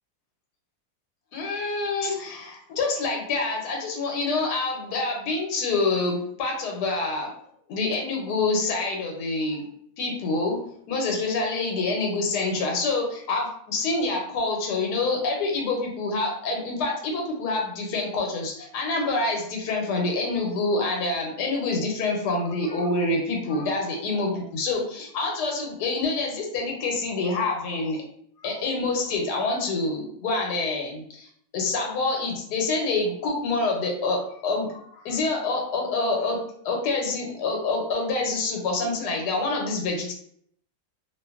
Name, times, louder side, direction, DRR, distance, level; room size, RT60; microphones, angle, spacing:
voice 1, 1.3-7.3 7.7-9.6 10.0-10.6 10.9-28.0 28.4-31.3 31.5-36.4 36.6-40.1, left 3 dB, 85° left, 0 dB, 1.2 m, -26 dB
2.5 x 2.4 x 2.3 m, 0.66 s
omnidirectional pair, 1.7 m